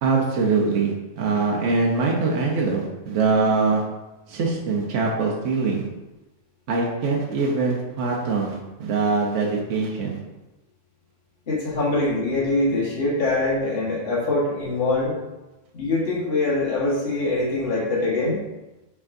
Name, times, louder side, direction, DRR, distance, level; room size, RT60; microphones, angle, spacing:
voice 1, 0.0-3.8 4.3-5.9 6.7-10.2, right 4 dB, 75° right, -2 dB, 1.0 m, -23 dB
voice 2, 11.5-15.2 15.7-18.4, left 2 dB, 55° left, -7 dB, 1.5 m, -23 dB
4.6 x 4.5 x 2.5 m, 1.0 s
omnidirectional pair, 1.3 m